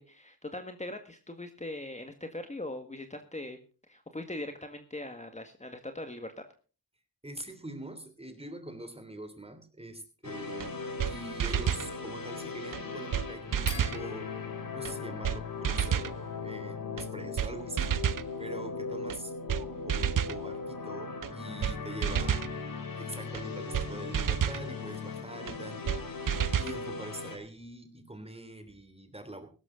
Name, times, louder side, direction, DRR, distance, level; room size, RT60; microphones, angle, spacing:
voice 1, 0.0-3.6 3.9-6.4, left 1 dB, 15° left, 6 dB, 1.8 m, -41 dB
voice 2, 7.2-14.4 14.7-22.5 23.0-29.5, right 1 dB, 15° right, 9 dB, 3.1 m, -44 dB
sound 1, 10.2-27.4, left 4 dB, 55° left, 3.5 m, -39 dB
sound 2, 10.6-10.7 11.0-11.1 11.4-11.9 12.7-12.8 13.1-13.3 13.5-14.0 14.8-14.9 15.2-15.4 15.6-16.1 17.0-17.1 17.4-17.5 17.8-18.3 19.1-19.2 19.5-19.6 19.9-20.4 21.2-21.3 21.6-21.7 22.0-22.5 23.3-23.4 23.7-23.9 24.1-24.6 25.5-25.6 25.9-26.0 26.3-26.8, right 9 dB, 55° right, 0.7 m, -29 dB
sound 3, 11.5-16.3, left 4 dB, 85° left, 5.1 m, -49 dB
16.0 x 12.5 x 3.8 m, 0.36 s
cardioid pair, 60°, 40 cm